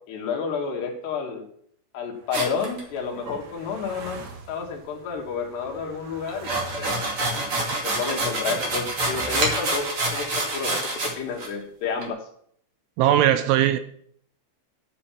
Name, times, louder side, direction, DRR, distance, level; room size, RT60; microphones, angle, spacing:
voice 1, 0.1-1.4 1.9-4.2 4.5-6.5 6.8-7.0 7.8-12.3, left 5 dB, 65° left, 1 dB, 3.2 m, -30 dB
sound 1, 2.1-10.0, right 3 dB, 60° right, 2.6 m, -44 dB
sound 2, 2.3-3.3 6.3-11.1 11.4-11.5 12.0-12.1, right 2 dB, 40° right, 2.3 m, -27 dB
voice 2, 13.0-13.8, right 11 dB, 85° right, 11 dB, 2.9 m, -19 dB
8.8 x 8.0 x 7.3 m, 0.64 s
omnidirectional pair, 5.8 m